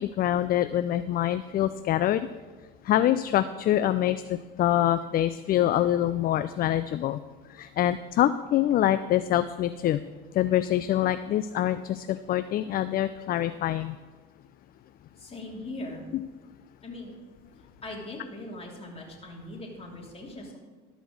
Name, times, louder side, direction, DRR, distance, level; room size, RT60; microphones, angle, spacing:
voice 1, 0.0-2.3 2.9-7.2 7.5-10.0 10.3-14.0, left 12 dB, 45° left, 12 dB, 0.4 m, -25 dB
voice 2, 15.2-16.1 16.8-17.1 17.8-20.6, left 1 dB, 30° left, -1 dB, 3.0 m, -40 dB
12.5 x 5.1 x 6.4 m, 1.3 s
supercardioid pair, 80°, 21 cm